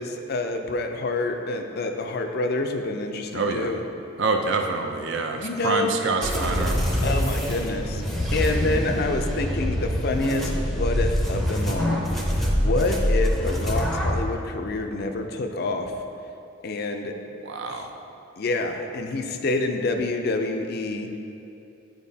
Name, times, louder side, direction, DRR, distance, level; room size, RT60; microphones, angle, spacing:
voice 1, 0.0-3.8 5.3-6.0 7.0-8.0 8.3-12.0 12.4-15.9 16.6-17.1 17.7-17.9 18.4-21.1, left 2 dB, 50° left, 5 dB, 0.4 m, -27 dB
voice 2, 3.3-3.7 4.2-6.8 17.4-17.9, right 3 dB, 55° right, 4 dB, 0.5 m, -26 dB
sound 1, 6.2-14.2, equal, ahead, 0.6 m, -25 dB
10.5 x 4.6 x 2.7 m, 2.8 s
head